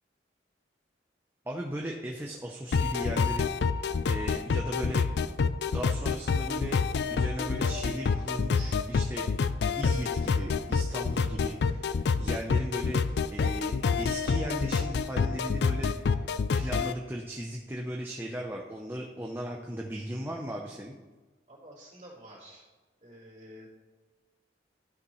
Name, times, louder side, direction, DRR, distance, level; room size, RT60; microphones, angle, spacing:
voice 1, 1.5-3.5 3.8-5.1 5.7-6.8 7.1-9.3 9.8-13.0 13.3-16.3 16.5-21.0, equal, 10° right, 0 dB, 0.6 m, -37 dB
sound 1, 2.7-16.9, left 5 dB, 65° left, 0.4 m, -27 dB
sound 2, 7.6-10.6, left 6 dB, 85° left, 3.0 m, -51 dB
sound 3, 8.2-9.2 9.7-10.8 11.1-13.3, equal, 30° left, 1.8 m, -53 dB
voice 2, 21.5-22.6 23.0-23.7, equal, 40° right, -7 dB, 3.0 m, -50 dB
12.5 x 5.9 x 3.1 m, 1.3 s
head